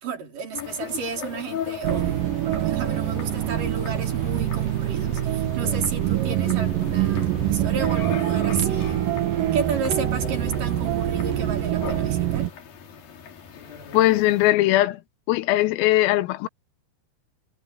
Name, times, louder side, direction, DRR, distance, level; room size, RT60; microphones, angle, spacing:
voice 1, 0.0-9.1 9.5-12.5, right 5 dB, 45° right, 5.0 m, -32 dB
sound 1, 0.5-14.5, left 8 dB, 50° left, 3.9 m, -39 dB
sound 2, 1.8-12.5, right 12 dB, 75° right, 2.0 m, -25 dB
voice 2, 13.9-15.0 15.3-16.5, left 16 dB, 85° left, 3.7 m, -20 dB
omnidirectional pair, 5.9 m